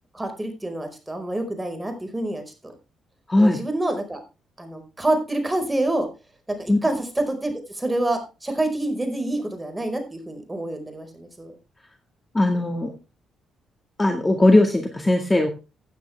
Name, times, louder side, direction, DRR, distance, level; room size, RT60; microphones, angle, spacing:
voice 1, 0.1-2.7 3.4-4.2 4.6-6.1 6.6-11.5, right 1 dB, 10° right, 5 dB, 5.0 m, -27 dB
voice 2, 3.3-3.6 6.7-6.8 12.3-12.9 14.0-15.5, left 1 dB, 15° left, 5 dB, 1.9 m, -19 dB
16.0 x 9.4 x 3.5 m, 0.29 s
cardioid pair, 90°, 0 cm